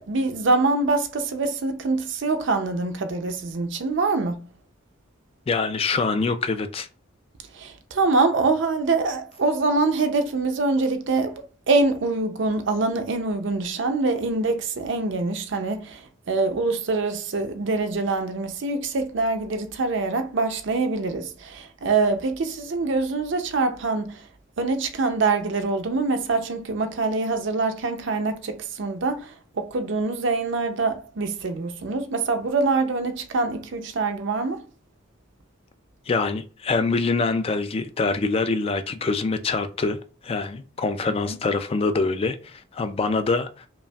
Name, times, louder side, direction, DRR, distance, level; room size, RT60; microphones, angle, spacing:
voice 1, 0.0-4.4 7.5-24.3 24.6-34.6 41.1-41.4, right 3 dB, 60° right, 0.5 m, -24 dB
voice 2, 5.5-6.9 36.1-40.0 40.2-43.7, left 3 dB, 30° left, 0.3 m, -25 dB
5.2 x 2.4 x 2.3 m
head